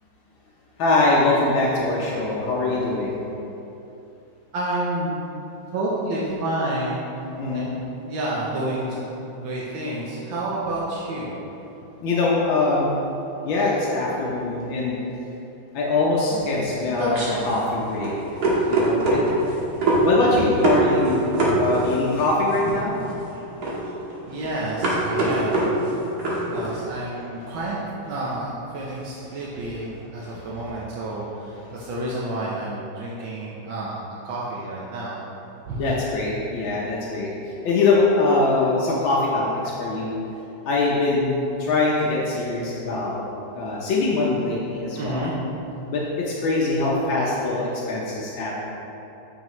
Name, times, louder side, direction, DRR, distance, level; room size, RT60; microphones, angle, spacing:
voice 1, 0.8-3.2 7.4-7.7 12.0-13.0 13.4-15.0 15.7-18.1 18.7-19.3 20.0-23.0 26.6-26.8 30.2-30.5 31.6-31.8 35.8-37.3 37.6-40.2 40.6-43.2 43.5-45.3 45.9-48.5, left 2 dB, 80° left, -4 dB, 1.6 m, -23 dB
voice 2, 4.5-5.2 5.7-7.2 7.5-7.6 8.0-9.0 9.4-11.4 24.3-25.8 26.5-27.8 28.0-35.2 35.7-35.9 36.5-36.7 45.0-45.3, right 1 dB, 80° right, -6 dB, 1.7 m, -29 dB
sound 1, 16.3-26.7, right 2 dB, 55° right, 1.9 m, -23 dB
8.5 x 6.6 x 3.1 m, 3.0 s
omnidirectional pair, 2.1 m